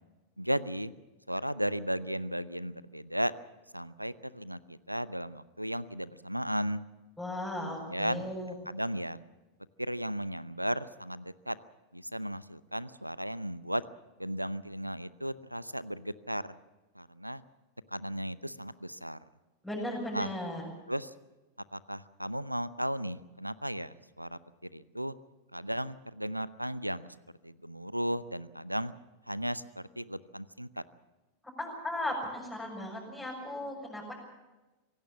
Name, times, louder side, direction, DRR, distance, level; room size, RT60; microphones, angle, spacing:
voice 1, 0.4-0.9 1.3-3.3 3.7-6.8 7.6-8.2 8.7-9.2 9.8-11.6 11.9-13.8 14.2-16.5 17.0-17.4 17.9-19.2 20.1-20.3 20.9-21.1 21.7-24.4 24.7-25.1 25.5-27.1 27.4-28.9 29.3-30.8, equal, 90° right, 18 dB, 0.7 m, -35 dB
voice 2, 7.2-8.5 19.6-20.6 31.6-34.1, left 1 dB, ahead, -5 dB, 6.9 m, -36 dB
26.0 x 17.0 x 7.1 m, 1.1 s
figure-of-eight pair, 90°, 0 cm